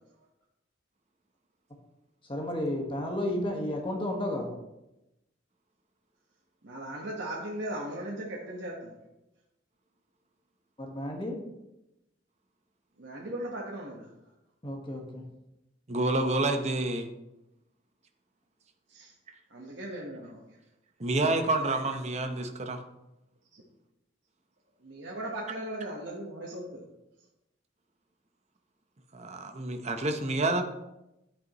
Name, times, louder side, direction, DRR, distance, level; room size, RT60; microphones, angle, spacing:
voice 1, 2.3-4.5 10.8-11.4 14.6-15.2, left 1 dB, 30° left, 1 dB, 1.5 m, -32 dB
voice 2, 6.6-9.0 13.0-14.1 18.9-19.1 19.5-20.6 21.4-21.8 23.5-23.6 24.8-26.8, right 1 dB, 75° right, -3 dB, 1.4 m, -38 dB
voice 3, 15.9-17.1 21.0-22.8 29.1-30.6, right 2 dB, 35° right, 6 dB, 0.9 m, -28 dB
11.0 x 8.3 x 3.1 m, 0.91 s
head